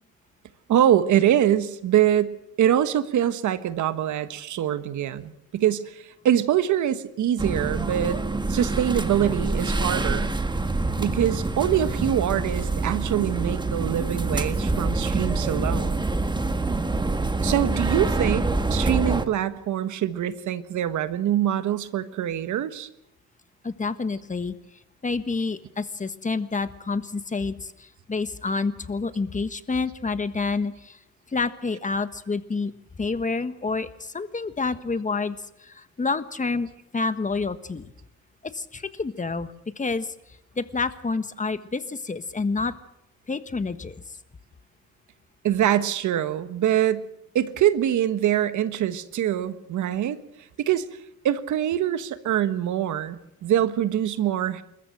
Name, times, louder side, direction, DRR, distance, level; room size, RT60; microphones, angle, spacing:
voice 1, 0.7-8.2 8.5-10.3 11.0-16.0 17.4-22.9 45.4-47.1 47.3-50.2 50.6-50.9 51.2-54.6, right 11 dB, 75° right, 12 dB, 1.4 m, -24 dB
sound 1, 7.4-19.2, right 3 dB, 15° right, 1.5 m, -26 dB
voice 2, 23.6-24.5 25.0-31.0 31.3-32.7 33.0-37.9 38.4-39.5 39.8-40.1 40.6-42.8 43.3-43.9, left 4 dB, 25° left, 11 dB, 1.4 m, -28 dB
28.0 x 14.5 x 7.8 m, 0.84 s
cardioid pair, 90°, 30 cm